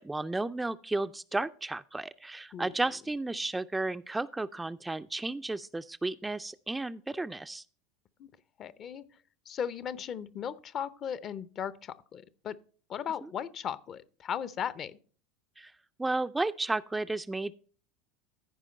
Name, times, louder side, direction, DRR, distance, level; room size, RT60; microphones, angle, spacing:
voice 1, 0.0-7.6 15.6-15.7 16.0-17.5, right 2 dB, 10° right, 0.4 m, -33 dB
voice 2, 8.6-9.1 9.5-12.6 12.9-15.0, left 8 dB, 40° left, 0.6 m, -37 dB
15.0 x 5.0 x 4.2 m
hypercardioid pair, 80°, 0 cm